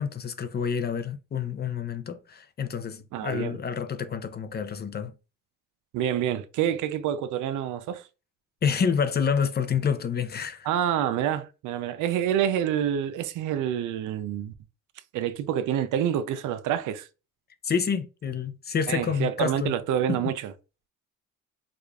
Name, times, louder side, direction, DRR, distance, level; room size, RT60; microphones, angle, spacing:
voice 1, 0.0-5.1 8.6-10.7 17.6-19.7 20.1-20.2, left 6 dB, 35° left, 0.5 m, -28 dB
voice 2, 3.1-3.6 5.9-8.1 10.6-14.5 15.1-17.1 18.9-20.5, right 10 dB, 80° right, 0.5 m, -27 dB
4.9 x 2.4 x 2.3 m
cardioid pair, 90°, 30 cm